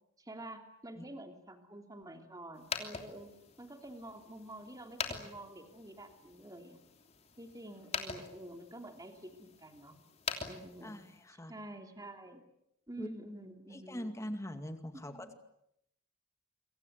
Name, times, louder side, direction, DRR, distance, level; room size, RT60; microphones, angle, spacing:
voice 1, 0.2-3.3 3.6-6.8 7.4-9.9 10.5-11.0 11.3-12.4 12.9-14.1 14.9-15.3, right 1 dB, 15° right, 5 dB, 3.0 m, -48 dB
sound 1, 2.5-11.3, left 5 dB, 30° left, 3.1 m, -44 dB
voice 2, 10.8-11.5 13.0-13.1 13.7-15.3, equal, 15° left, 8 dB, 2.2 m, -42 dB
28.0 x 24.0 x 8.1 m, 0.78 s
head